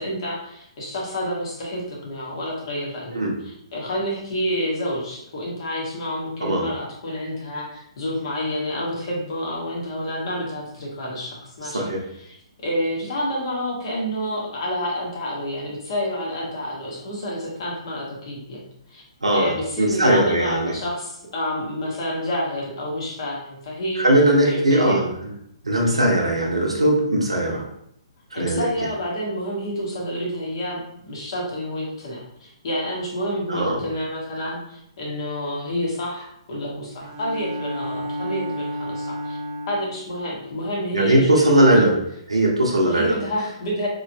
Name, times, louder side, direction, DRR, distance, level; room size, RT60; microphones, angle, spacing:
voice 1, 0.0-11.9 12.2-12.4 12.6-18.6 18.9-19.0 19.3-24.0 24.5-25.1 25.8-26.0 28.3-30.8 31.1-39.4 39.7-41.8 42.9-43.9, equal, 55° left, -3 dB, 1.3 m, -29 dB
voice 2, 11.6-12.0 19.2-20.7 24.0-25.0 25.6-27.6 28.3-28.6 33.5-33.8 40.9-41.9 42.3-43.2, right 1 dB, 85° right, -2 dB, 0.8 m, -19 dB
Bowed string instrument, 37.0-40.1, equal, 30° right, 0.4 m, -31 dB
3.1 x 3.1 x 2.7 m, 0.74 s
figure-of-eight pair, 130°, 3 cm